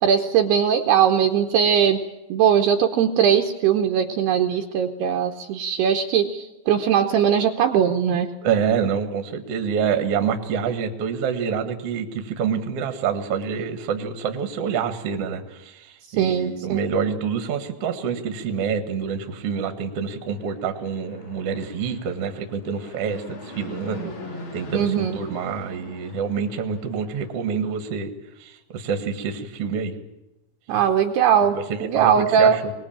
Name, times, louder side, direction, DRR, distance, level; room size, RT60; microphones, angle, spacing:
voice 1, 0.0-2.0 2.3-8.3 16.2-16.8 24.7-25.2 30.7-32.6, right 8 dB, 75° right, 5 dB, 2.6 m, -20 dB
voice 2, 8.4-24.1 24.5-28.1 28.4-29.9 31.5-32.1 32.4-32.7, right 6 dB, 50° right, 7 dB, 1.9 m, -27 dB
Fixed-wing aircraft airplane, 20.2-27.6, left 1 dB, 65° left, 6.9 m, -42 dB
23.0 x 20.0 x 8.9 m, 0.95 s
omnidirectional pair, 5.5 m